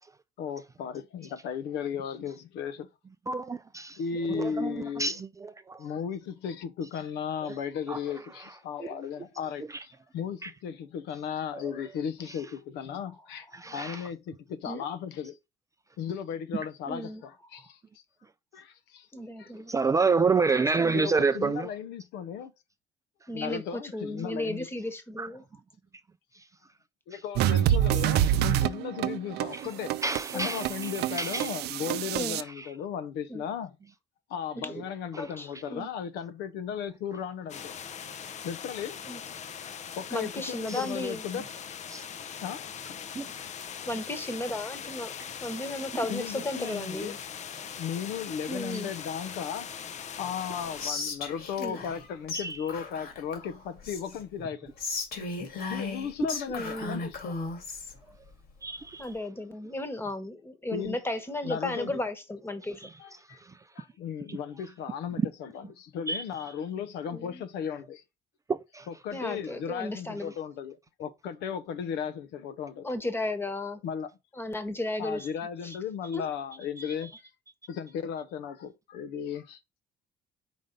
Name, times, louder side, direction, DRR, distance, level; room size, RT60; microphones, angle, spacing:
voice 1, 0.4-2.9 4.0-5.2 5.8-13.5 13.7-15.4 16.0-17.8 18.5-19.1 19.4-19.5 20.9-22.5 23.3-24.7 27.1-29.9 30.3-33.8 34.3-37.7 38.4-39.0 40.0-41.5 42.4-42.6 42.9-43.0 43.9-44.0 46.1-47.1 47.8-49.7 50.2-54.7 55.7-57.3 60.7-61.0 61.4-62.0 63.0-63.4 63.8-68.0 68.9-72.9 73.8-74.1 75.0-77.1 77.7-79.6, left 7 dB, 85° left, 0.8 m, -36 dB
voice 2, 3.3-4.0 4.3-5.8 7.9-8.0 10.4-10.5 13.6-14.0 19.7-21.7 25.2-25.3 30.0-30.6 31.2-31.5 40.7-40.8 41.9-42.0 43.2-43.3 52.3-52.6 58.6-59.1 64.3-64.4 66.1-66.2 68.5-68.9, right 4 dB, 20° right, 0.3 m, -28 dB
voice 3, 16.9-17.2 19.1-19.7 20.5-21.0 23.3-25.4 30.3-30.5 32.1-32.4 33.3-33.4 34.6-34.7 35.2-35.9 39.1-39.2 40.1-41.2 43.9-45.1 45.4-47.2 48.5-48.9 51.6-51.8 56.5-57.0 59.0-62.8 67.1-67.4 69.1-70.3 72.8-73.8 74.4-75.3 75.6-75.7 76.1-76.2, left 1 dB, 15° left, 1.2 m, -34 dB
sound 1, 27.4-32.4, right 12 dB, 75° right, 0.5 m, -27 dB
sound 2, 37.5-50.9, left 8 dB, 45° left, 0.6 m, -41 dB
Whispering, 50.8-52.0 52.3-52.4 52.7-54.2 54.8-57.9, left 3 dB, 65° left, 2.0 m, -36 dB
5.2 x 3.7 x 5.3 m
cardioid pair, 110°, 17 cm